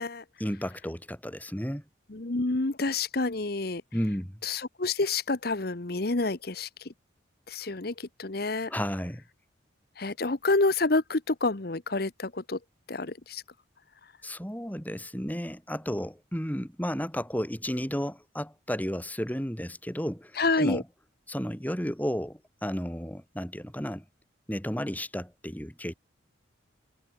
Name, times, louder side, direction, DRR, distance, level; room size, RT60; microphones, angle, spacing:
voice 1, 0.4-1.8 3.9-4.4 8.7-9.2 14.2-20.8 21.3-24.0 24.5-25.9, equal, 10° left, 4.5 m, -33 dB
voice 2, 2.1-3.8 4.4-6.9 7.5-8.7 10.0-12.6 12.9-13.4 20.4-20.8, left 3 dB, 55° left, 1.1 m, -28 dB
head